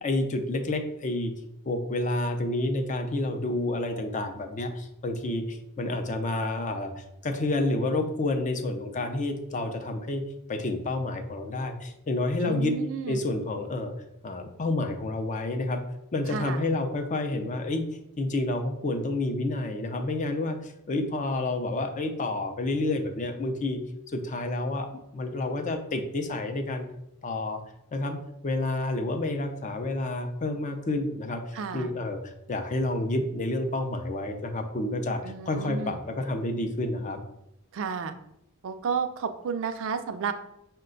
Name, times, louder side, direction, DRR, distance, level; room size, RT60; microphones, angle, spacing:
voice 1, 0.0-1.3 1.7-12.8 13.1-13.9 14.2-15.8 16.1-23.8 24.1-27.6 27.9-28.2 28.4-37.2, left 2 dB, 35° left, 6 dB, 0.5 m, -29 dB
voice 2, 12.4-13.2 16.3-16.6 31.5-31.9 35.2-36.0 37.7-38.1 38.6-40.3, right 6 dB, 60° right, 8 dB, 0.4 m, -32 dB
5.5 x 2.2 x 3.8 m, 0.82 s
head